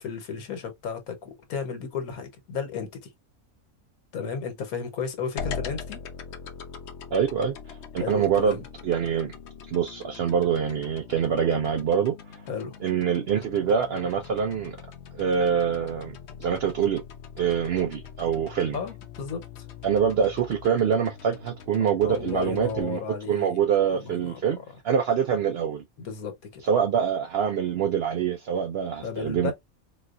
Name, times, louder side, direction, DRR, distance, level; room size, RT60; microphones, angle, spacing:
voice 1, 0.0-3.1 4.1-6.0 8.0-8.6 12.5-12.8 18.7-19.4 22.0-23.6 23.9-24.5 26.0-26.6 29.0-29.5, left 6 dB, 85° left, 1.5 m, -34 dB
sound 1, 5.4-22.8, left 6 dB, 60° left, 0.8 m, -42 dB
voice 2, 7.1-9.3 9.7-12.4 12.8-14.8 15.1-17.0 17.4-18.8 19.8-23.0 23.3-24.6 24.8-25.8 26.6-29.5, right 7 dB, 70° right, 0.6 m, -25 dB
4.1 x 2.3 x 2.4 m
omnidirectional pair, 1.5 m